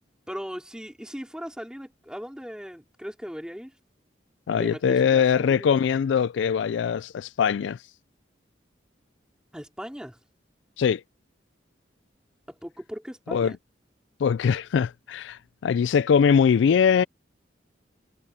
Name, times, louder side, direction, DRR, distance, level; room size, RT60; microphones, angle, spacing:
voice 1, 0.3-3.7 4.5-5.8 9.5-10.2 12.5-13.6, equal, 5° right, 4.4 m, -38 dB
voice 2, 4.5-7.8 10.8-11.0 13.3-13.6 14.2-17.0, left 7 dB, 80° left, 0.3 m, -22 dB
head